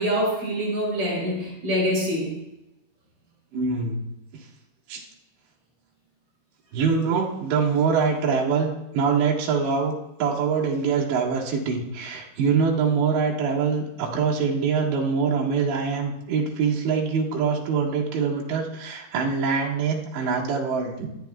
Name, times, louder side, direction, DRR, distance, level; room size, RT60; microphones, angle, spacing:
voice 1, 0.0-2.3, equal, 35° right, -5 dB, 6.5 m, -25 dB
voice 2, 3.5-4.0 4.9-5.0 6.7-21.1, right 5 dB, 70° right, -4 dB, 4.0 m, -24 dB
25.5 x 9.5 x 2.4 m, 0.91 s
omnidirectional pair, 5.5 m